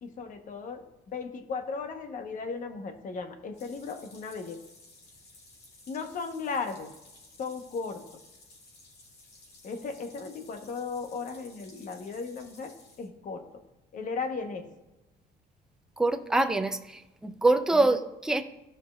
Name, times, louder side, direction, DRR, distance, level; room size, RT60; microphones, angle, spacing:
voice 1, 0.0-4.6 5.9-6.9 7.4-8.0 9.6-13.4 13.9-14.7 17.8-17.9, left 4 dB, 50° left, 6 dB, 1.0 m, -36 dB
sound 1, 3.5-13.1, left 2 dB, 65° left, 2.3 m, -55 dB
voice 2, 16.0-18.4, right 2 dB, 5° right, 7 dB, 0.5 m, -25 dB
14.5 x 5.1 x 2.4 m, 1.0 s
cardioid pair, 110°, 17 cm